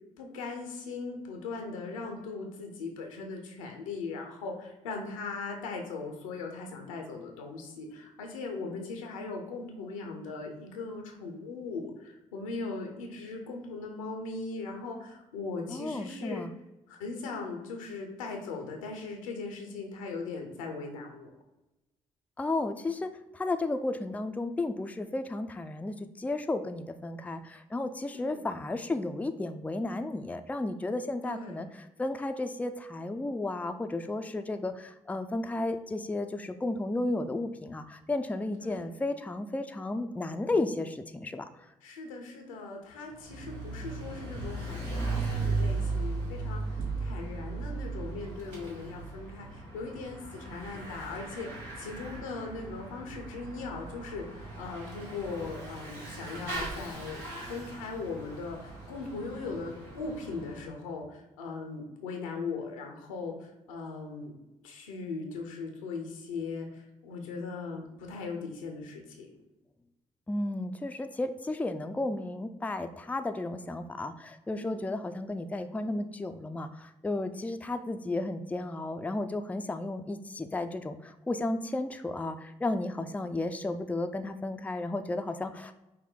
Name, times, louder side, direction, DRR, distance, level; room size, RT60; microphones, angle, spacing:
voice 1, 0.2-16.4 16.9-21.3 28.1-28.4 31.2-31.7 38.6-39.0 41.8-51.5 51.8-57.2 57.5-64.3 64.6-69.3 74.5-74.9 82.9-83.1, left 4 dB, 85° left, 2 dB, 0.7 m, -39 dB
voice 2, 15.7-16.5 22.4-41.4 70.3-85.7, left 2 dB, 10° left, 7 dB, 0.4 m, -33 dB
Bicycle / Mechanisms, 43.1-60.7, right 3 dB, 80° right, 1.2 m, -37 dB
5.6 x 2.2 x 3.7 m, 0.97 s
hypercardioid pair, 40°, 16 cm